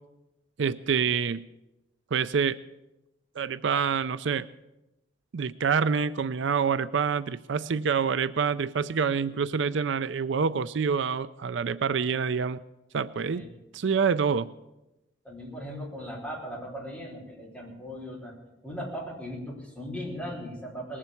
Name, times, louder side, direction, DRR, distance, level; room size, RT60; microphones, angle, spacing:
voice 1, 0.6-1.4 2.1-2.6 3.4-4.5 5.3-12.6 12.9-13.4 13.7-14.5, right 6 dB, 65° right, 14 dB, 0.4 m, -26 dB
voice 2, 15.2-18.3 18.6-21.0, equal, 5° left, -5 dB, 4.8 m, -38 dB
20.0 x 7.5 x 8.3 m, 0.95 s
head